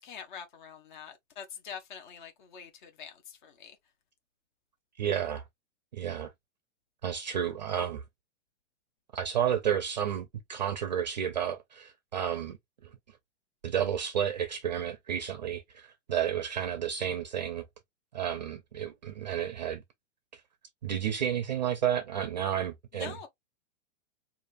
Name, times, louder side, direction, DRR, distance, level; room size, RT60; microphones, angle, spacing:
voice 1, 0.0-3.8 22.9-23.3, left 7 dB, 45° left, 0.9 m, -45 dB
voice 2, 5.0-5.4 5.9-6.3 7.0-8.0 9.1-12.6 12.8-12.9 13.6-17.7 18.1-19.8 20.3-20.4 20.8-23.2, right 9 dB, 40° right, 0.4 m, -31 dB
5.0 x 2.5 x 2.4 m
supercardioid pair, 180°, 36 cm